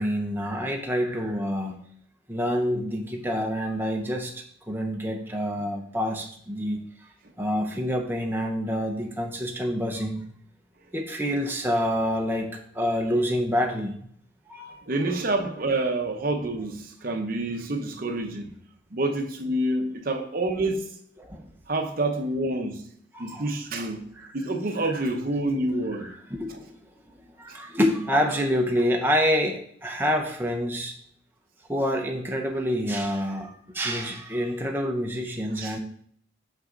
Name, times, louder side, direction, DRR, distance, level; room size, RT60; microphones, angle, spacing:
voice 1, 0.0-1.8 2.3-6.8 7.4-10.3 10.9-14.0 14.5-14.8 21.2-21.5 23.1-23.5 24.2-24.3 24.8-25.0 26.0-26.7 27.4-30.9 31.7-35.8, equal, 10° right, 0.7 m, -27 dB
voice 2, 14.9-18.5 18.9-21.0 21.7-22.8 23.2-24.0 24.3-26.1 35.5-35.8, right 2 dB, 45° right, 0.8 m, -27 dB
6.1 x 5.7 x 3.8 m
head